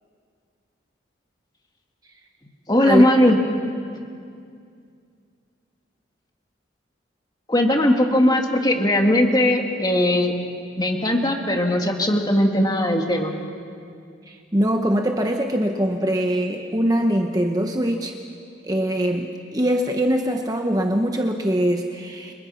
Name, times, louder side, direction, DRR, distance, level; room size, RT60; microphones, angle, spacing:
voice 1, 2.7-3.4 7.5-10.3 10.8-13.3, left 1 dB, 20° left, 2 dB, 2.2 m, -19 dB
voice 2, 14.3-18.1 18.6-22.3, equal, 20° right, 3 dB, 1.1 m, -22 dB
30.0 x 26.5 x 5.8 m, 2.3 s
head